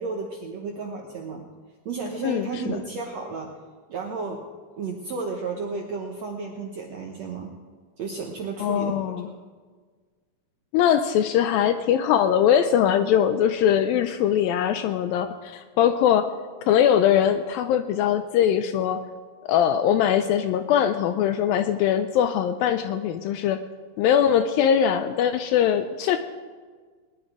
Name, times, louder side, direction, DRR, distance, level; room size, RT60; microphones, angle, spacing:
voice 1, 0.0-1.4 1.8-3.6 3.9-4.4 4.8-7.5 8.0-9.2, right 4 dB, 85° right, 2 dB, 1.5 m, -32 dB
voice 2, 2.2-2.8 8.6-9.2 10.7-16.3 16.7-19.1 19.5-23.6 24.0-26.2, left 9 dB, 85° left, 9 dB, 2.1 m, -21 dB
20.5 x 11.0 x 4.8 m, 1.5 s
omnidirectional pair, 4.7 m